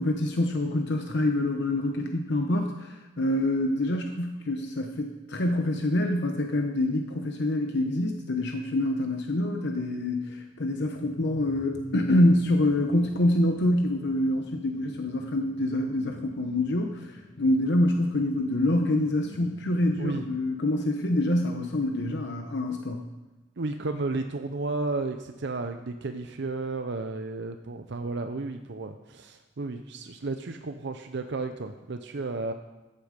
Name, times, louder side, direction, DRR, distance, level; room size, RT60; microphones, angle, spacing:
voice 1, 0.0-23.1, left 1 dB, 60° left, 4 dB, 0.9 m, -26 dB
sound 1, 10.5-20.4, equal, 35° left, 1.5 m, -48 dB
voice 2, 23.6-32.5, right 3 dB, 65° right, 7 dB, 0.6 m, -33 dB
14.0 x 8.3 x 5.2 m, 1.1 s
head